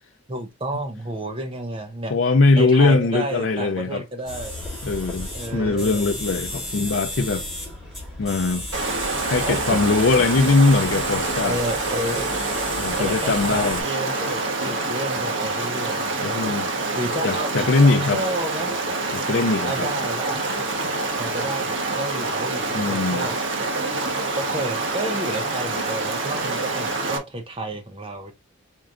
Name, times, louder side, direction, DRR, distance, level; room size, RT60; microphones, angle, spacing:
voice 1, 0.3-2.1 2.6-4.6 5.3-6.2 9.4-9.8 11.4-12.5 13.0-16.4 16.9-17.7 18.0-18.7 19.6-20.4 21.2-23.3 24.4-28.3, right 1 dB, 25° right, 0.6 m, -31 dB
voice 2, 2.1-4.0 4.8-7.5 8.2-8.7 9.2-11.6 12.8-13.8 16.2-16.7 17.2-18.2 19.1-19.9 22.7-23.3, left 3 dB, 65° left, 0.5 m, -21 dB
sound 1, 4.3-13.8, left 1 dB, ahead, 2.4 m, -34 dB
Stream, 8.7-27.2, right 3 dB, 60° right, 1.2 m, -26 dB
4.8 x 4.4 x 2.5 m
head